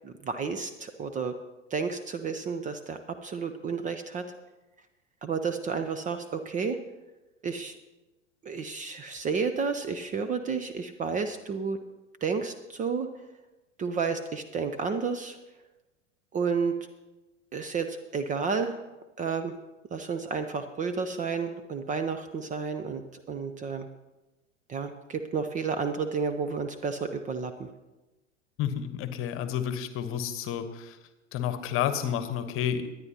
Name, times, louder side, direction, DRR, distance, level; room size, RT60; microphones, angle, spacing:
voice 1, 0.0-1.3 1.7-4.2 5.2-6.8 7.4-7.7 8.4-11.8 12.2-13.1 13.8-15.4 16.3-16.8 17.5-18.8 19.2-19.6 19.9-23.9 24.7-27.7, right 5 dB, 20° right, 9 dB, 0.6 m, -31 dB
voice 2, 28.6-31.0 31.3-32.9, left 9 dB, 35° left, 10 dB, 1.2 m, -30 dB
23.0 x 9.6 x 2.9 m, 1.1 s
figure-of-eight pair, 85°, 37 cm